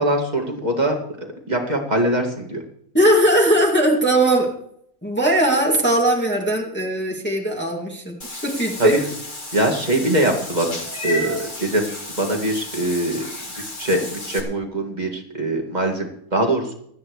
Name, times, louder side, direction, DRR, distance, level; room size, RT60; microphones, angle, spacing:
voice 1, 0.0-2.6 8.8-9.0 9.5-13.3 13.8-16.7, right 1 dB, 25° right, 2 dB, 2.4 m, -23 dB
voice 2, 2.9-4.5 5.0-8.2 8.4-9.0, right 1 dB, 5° left, -1 dB, 2.3 m, -19 dB
Meow / Water / Bathtub (filling or washing), 8.2-14.4, left 1 dB, 30° left, 2.3 m, -33 dB
26.0 x 9.6 x 3.2 m, 0.68 s
omnidirectional pair, 1.7 m